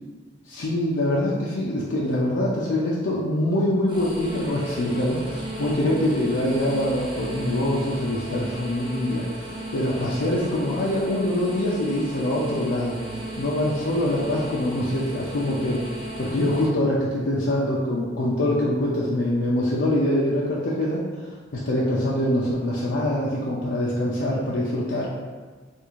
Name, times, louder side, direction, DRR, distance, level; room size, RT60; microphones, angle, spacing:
voice 1, 0.5-13.0 13.4-15.8 16.2-21.0 21.5-25.1, left 1 dB, 85° left, -6 dB, 0.5 m, -24 dB
sound 1, 3.9-16.7, right 1 dB, 25° right, 0.6 m, -35 dB
3.5 x 2.4 x 3.0 m, 1.4 s
head